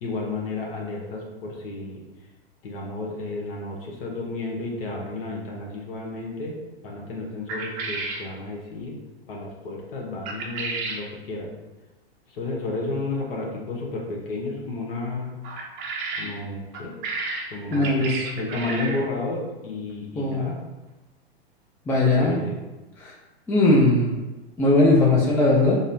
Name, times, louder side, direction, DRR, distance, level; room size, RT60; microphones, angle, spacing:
voice 1, 0.0-2.0 2.6-6.5 6.8-8.9 9.3-11.5 12.3-15.3 16.2-16.9 17.5-20.6 22.0-22.6, left 2 dB, 65° left, -2 dB, 0.9 m, -32 dB
sound 1, 7.5-8.3 10.2-11.0 15.4-16.3 16.7-19.1, right 3 dB, 35° right, 0.6 m, -32 dB
voice 2, 17.7-18.1 20.2-20.5 21.9-22.4 23.0-23.1 23.5-24.1 24.6-25.8, left 2 dB, 5° left, -4 dB, 0.3 m, -19 dB
5.2 x 2.0 x 2.6 m, 1.1 s
hypercardioid pair, 105°, 31 cm